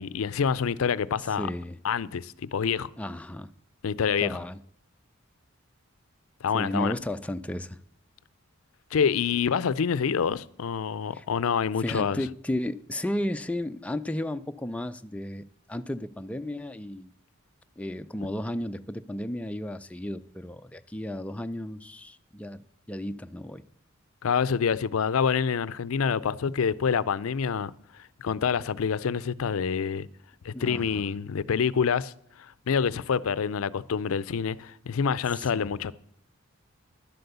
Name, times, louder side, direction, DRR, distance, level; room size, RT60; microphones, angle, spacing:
voice 1, 0.0-1.5 1.8-2.9 3.8-4.3 6.4-6.9 8.9-12.2 24.2-27.7 28.2-30.1 30.4-32.1 32.7-35.9, left 6 dB, 80° left, 0.4 m, -27 dB
voice 2, 1.4-1.8 3.0-3.5 4.2-4.6 6.5-7.8 11.1-11.3 11.8-17.1 17.8-23.6 30.5-31.1 35.5-35.8, left 1 dB, 5° left, 0.4 m, -34 dB
11.5 x 7.8 x 6.8 m
head